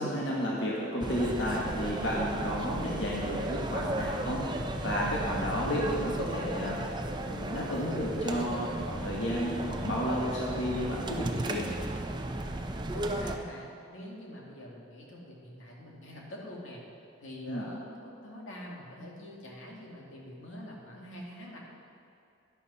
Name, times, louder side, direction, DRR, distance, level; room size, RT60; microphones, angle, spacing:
voice 1, 0.0-4.5 4.8-11.7 17.5-17.6, equal, 65° left, -5 dB, 1.8 m, -32 dB
sound 1, 1.0-13.4, right 1 dB, 20° right, 0.5 m, -35 dB
voice 2, 12.9-16.8 17.2-21.6, left 1 dB, 85° left, -2 dB, 2.3 m, -45 dB
11.0 x 11.0 x 4.3 m, 2.7 s
head